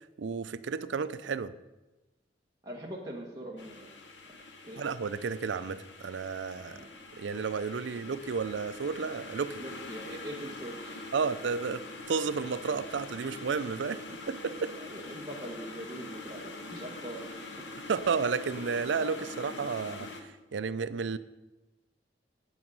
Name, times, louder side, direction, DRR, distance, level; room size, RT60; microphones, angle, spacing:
voice 1, 0.2-1.5 4.8-6.8 7.2-9.6 11.1-14.8 17.9-21.2, right 5 dB, 90° right, 15 dB, 0.5 m, -32 dB
voice 2, 2.6-3.9 4.3-4.4 4.6-4.8 6.7-6.9 9.6-11.1 14.8-17.6, right 1 dB, 20° right, -3 dB, 1.1 m, -42 dB
sound 1, 3.6-20.2, left 2 dB, 80° left, 1.1 m, -44 dB
8.8 x 8.6 x 5.4 m, 1.1 s
head